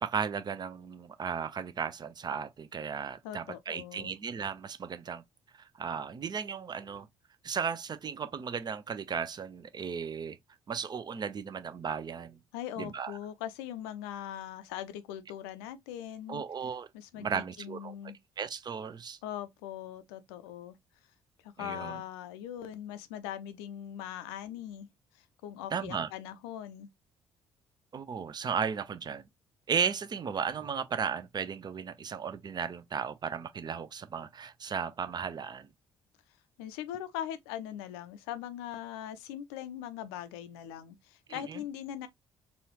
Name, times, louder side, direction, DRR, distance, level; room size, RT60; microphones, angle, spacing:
voice 1, 0.0-5.2 5.6-7.1 7.4-10.4 10.7-12.4 12.8-13.2 16.3-16.9 17.1-17.9 18.4-19.2 21.6-22.0 25.7-26.1 27.9-29.3 29.7-35.7 41.3-41.6, right 6 dB, 30° right, 0.5 m, -35 dB
voice 2, 3.2-4.1 12.5-16.4 16.9-18.2 19.2-20.8 21.4-24.9 25.4-26.9 36.6-42.1, left 11 dB, 70° left, 0.5 m, -41 dB
4.1 x 2.4 x 2.9 m
figure-of-eight pair, 45°, 14 cm